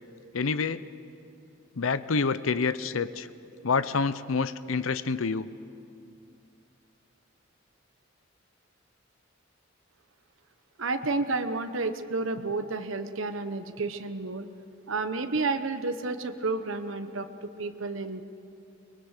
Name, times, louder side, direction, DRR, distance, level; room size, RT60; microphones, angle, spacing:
voice 1, 0.3-0.9 1.8-3.3 3.6-5.5, left 4 dB, 90° left, 15 dB, 0.7 m, -27 dB
voice 2, 10.8-14.5 14.9-18.2, right 3 dB, 80° right, 8 dB, 1.0 m, -31 dB
24.0 x 21.0 x 6.7 m, 2.6 s
head